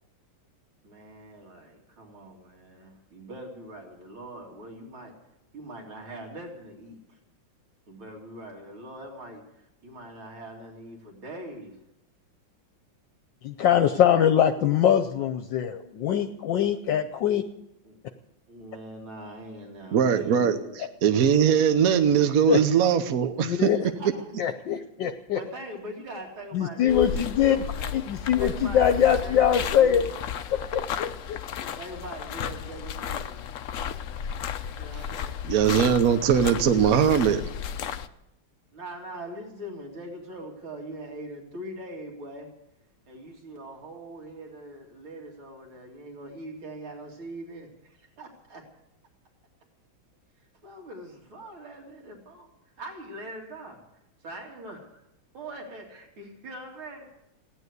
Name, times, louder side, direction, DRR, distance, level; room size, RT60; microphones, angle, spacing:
voice 1, 0.8-5.1 5.5-7.2 7.9-11.8 17.8-18.0 18.5-20.7 23.8-24.3 25.3-27.9 28.4-30.2 31.8-33.4 34.6-35.5 36.5-37.3 38.7-42.5 43.1-48.6 50.4-52.5 52.8-53.8 54.2-55.0 55.3-57.1, right 1 dB, 80° right, 0 dB, 3.4 m, -42 dB
voice 2, 13.4-17.4 22.5-22.6 23.4-23.8 24.4-25.4 26.5-27.6 27.9-30.0 30.5-31.7, left 9 dB, 70° left, 8 dB, 1.3 m, -23 dB
voice 3, 19.9-23.7 35.4-37.4, right 8 dB, 55° right, 8 dB, 1.1 m, -21 dB
sound 1, 26.9-38.1, left 8 dB, 90° left, 0.7 m, -34 dB
16.0 x 11.0 x 8.1 m, 0.85 s
omnidirectional pair, 2.3 m